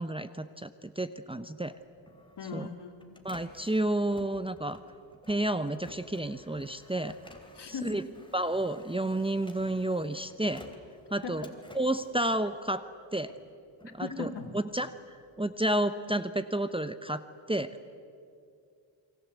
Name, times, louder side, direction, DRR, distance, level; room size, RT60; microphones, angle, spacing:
voice 1, 0.0-1.8 2.5-2.7 3.2-4.8 5.3-7.1 7.7-8.0 8.3-10.7 11.1-11.5 11.7-13.4 13.9-14.9 15.4-17.8, right 1 dB, 10° right, 10 dB, 0.9 m, -31 dB
Printer, 1.7-13.1 13.5-15.4, left 1 dB, 10° left, 3.3 m, -55 dB
voice 2, 2.4-3.2 7.5-8.0 11.2-11.5 14.0-14.5, left 6 dB, 60° left, 4 dB, 3.4 m, -39 dB
27.5 x 24.0 x 8.2 m, 2.4 s
cardioid pair, 85°, 47 cm